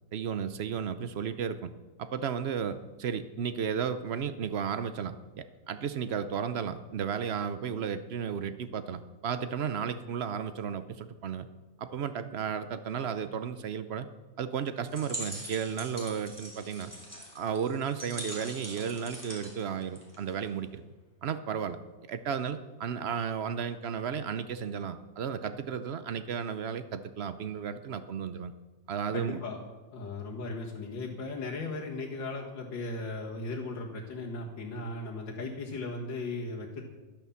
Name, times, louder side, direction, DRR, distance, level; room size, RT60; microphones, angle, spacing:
voice 1, 0.1-1.7 2.0-11.5 11.8-14.1 14.4-16.9 17.3-20.8 21.2-21.8 22.1-28.5 28.9-29.4, right 7 dB, 75° right, 11 dB, 0.5 m, -34 dB
sound 1, 14.8-20.5, right 1 dB, 10° right, 3.3 m, -43 dB
voice 2, 29.1-29.6 29.9-36.8, left 3 dB, 75° left, -4 dB, 2.3 m, -37 dB
12.0 x 11.0 x 7.1 m, 1.3 s
omnidirectional pair, 2.0 m